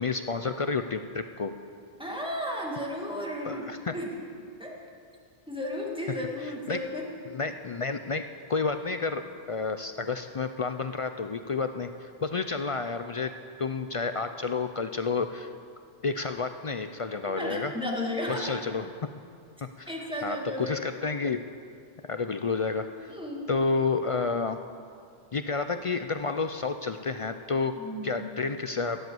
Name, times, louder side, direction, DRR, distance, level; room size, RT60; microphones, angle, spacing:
voice 1, 0.0-1.5 3.4-3.9 6.7-6.8 7.3-8.2 8.5-9.2 9.5-13.3 13.6-15.5 16.0-17.7 18.3-19.1 19.8-19.9 20.2-21.4 22.1-23.1 23.5-24.6 25.3-27.7 28.0-29.0, left 4 dB, 50° left, 8 dB, 0.4 m, -30 dB
voice 2, 2.0-4.1 4.6-4.8 5.5-7.1 17.4-18.5 19.9-20.8 23.1-23.5 27.8-28.2, left 1 dB, 5° right, -2 dB, 1.9 m, -34 dB
16.0 x 7.7 x 7.8 m, 2.3 s
omnidirectional pair, 1.0 m